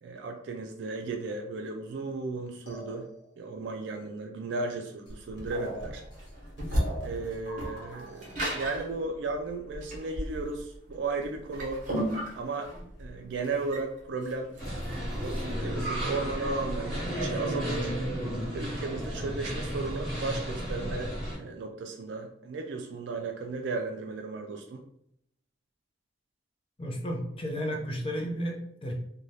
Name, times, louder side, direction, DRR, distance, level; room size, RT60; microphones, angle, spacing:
voice 1, 0.0-3.1 3.4-6.0 7.0-11.8 12.4-12.7 13.0-14.5 15.2-17.9 18.5-21.1 21.4-24.8, right 3 dB, 70° right, 3 dB, 0.3 m, -35 dB
sound 1, 2.7-3.5 5.1-5.2 5.4-8.4, right 1 dB, 80° left, 1.0 m, -42 dB
sound 2, 5.1-15.5, equal, 45° right, 0.9 m, -35 dB
sound 3, 14.6-21.4, equal, 5° left, 1.4 m, -33 dB
voice 2, 26.8-28.9, equal, 30° left, 1 dB, 0.5 m, -33 dB
2.6 x 2.2 x 3.1 m, 0.71 s
head